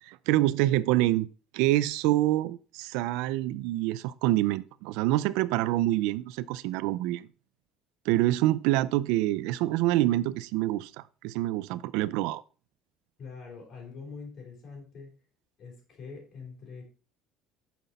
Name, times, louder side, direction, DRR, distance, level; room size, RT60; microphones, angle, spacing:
voice 1, 0.0-7.3 8.1-12.4, right 16 dB, 80° right, 0.4 m, -26 dB
voice 2, 13.2-15.1 15.6-16.9, left 4 dB, 35° left, 4.0 m, -44 dB
9.1 x 5.9 x 4.1 m
cardioid pair, 175°, 0 cm